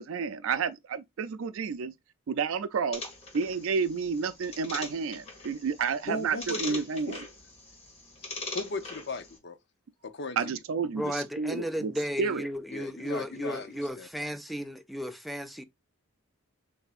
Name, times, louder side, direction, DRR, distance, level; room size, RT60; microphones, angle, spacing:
voice 1, 0.0-1.9 2.3-3.0 3.3-7.2 10.4-11.9 12.2-12.4, right 5 dB, 75° right, 0.4 m, -30 dB
sound 1, 2.9-9.4, left 2 dB, 30° left, 1.3 m, -42 dB
voice 2, 6.1-6.8 7.1-7.2 8.5-9.6 10.0-10.4 12.7-14.1, left 2 dB, 55° left, 0.6 m, -37 dB
voice 3, 10.9-15.6, equal, ahead, 0.3 m, -34 dB
6.7 x 2.7 x 2.4 m
head